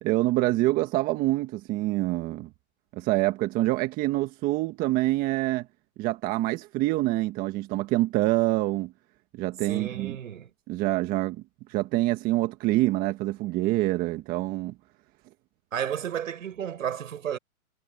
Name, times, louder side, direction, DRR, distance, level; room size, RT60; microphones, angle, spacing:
voice 1, 0.0-2.5 2.9-5.6 6.0-8.9 9.4-10.2 10.7-11.4 11.7-14.7, right 18 dB, 20° right, 1.5 m, -26 dB
voice 2, 9.7-10.5 15.7-17.4, right 9 dB, 65° right, 7.6 m, -32 dB
hypercardioid pair, 145°, 43 cm